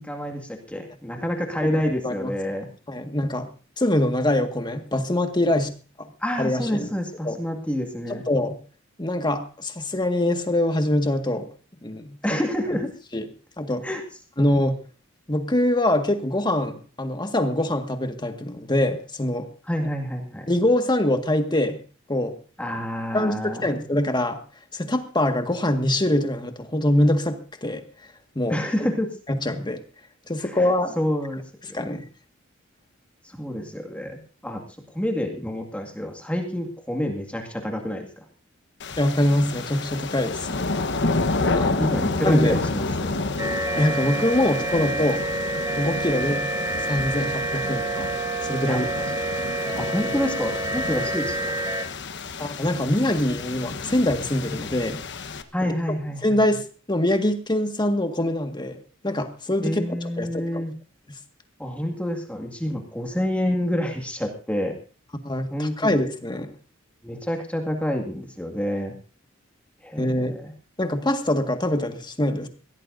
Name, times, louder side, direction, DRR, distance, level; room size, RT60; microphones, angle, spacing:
voice 1, 0.0-2.7 5.5-5.6 6.2-8.2 12.2-12.9 13.8-14.0 19.7-20.5 22.6-23.8 28.5-29.1 30.4-31.4 31.7-32.0 33.2-38.2 41.8-43.2 48.6-48.8 49.8-51.6 55.5-56.4 59.6-60.7 61.6-64.8 65.5-66.1 67.0-68.9 69.8-70.5, equal, 5° left, 3 dB, 2.1 m, -28 dB
voice 2, 2.9-3.5 3.8-5.7 6.0-6.1 6.4-6.9 7.2-7.4 8.1-8.6 9.0-11.5 11.8-12.4 13.1-13.3 13.6-13.9 14.4-14.8 15.3-19.5 20.5-21.8 22.1-22.4 23.1-24.4 24.7-27.8 28.4-28.6 29.3-29.8 30.3-31.0 31.7-32.0 39.0-40.7 41.5-41.9 42.2-42.5 43.8-45.2 45.8-46.5 46.9-48.1 48.4-48.9 52.4-55.0 55.6-55.7 56.2-59.8 60.2-60.6 65.2-66.5 70.0-70.3 70.8-72.5, left 1 dB, 20° left, 6 dB, 1.8 m, -24 dB
sound 1, 38.8-55.4, left 3 dB, 60° left, 1.2 m, -30 dB
sound 2, 43.4-51.8, right 2 dB, 15° right, 1.3 m, -28 dB
22.5 x 16.5 x 2.7 m, 0.37 s
head